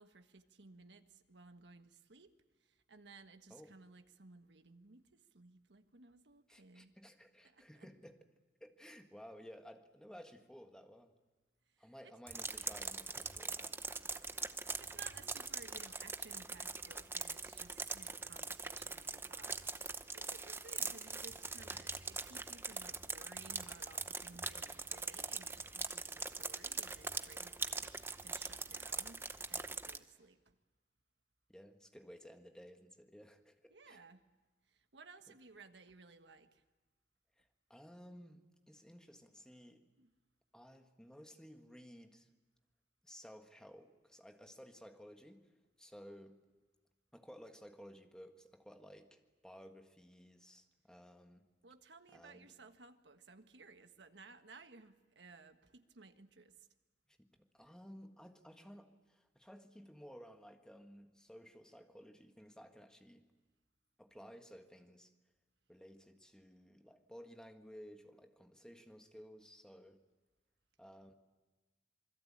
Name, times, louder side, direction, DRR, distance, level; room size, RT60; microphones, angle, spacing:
voice 1, 0.0-2.3 2.6-6.9 7.4-7.9 11.7-12.1 14.4-30.5 33.7-34.2 34.7-36.6 40.0-40.1 51.6-56.7, right 3 dB, 85° right, 8 dB, 1.5 m, -59 dB
voice 2, 6.5-8.2 8.6-11.1 11.8-13.8 31.5-34.0 35.3-35.4 37.4-39.9 40.5-42.3 43.0-45.5 45.8-46.5 47.1-51.5 52.1-52.5 57.2-63.3 64.0-65.1 65.7-70.0 70.8-71.1, equal, 5° left, 5 dB, 1.7 m, -56 dB
sound 1, 12.3-30.0, right 4 dB, 15° right, 0.8 m, -42 dB
27.0 x 21.0 x 8.8 m, 1.2 s
head